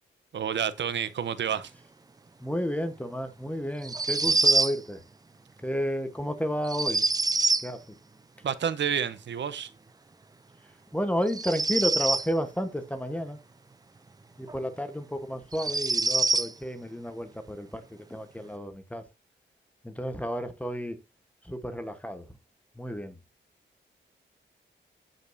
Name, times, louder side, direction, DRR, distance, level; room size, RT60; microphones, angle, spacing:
voice 1, 0.3-1.7 8.4-9.7, right 8 dB, 65° right, 0.8 m, -29 dB
voice 2, 2.4-5.0 5.6-7.0 7.6-8.0 10.9-13.4 14.4-19.0 19.8-21.0 21.4-22.3 22.8-23.1, equal, 5° left, 1.1 m, -32 dB
sound 1, 3.8-4.8 6.6-7.7 11.3-12.3 14.5-14.6 15.5-16.5, right 3 dB, 20° right, 0.5 m, -25 dB
15.5 x 5.3 x 2.7 m
cardioid pair, 90°, 20 cm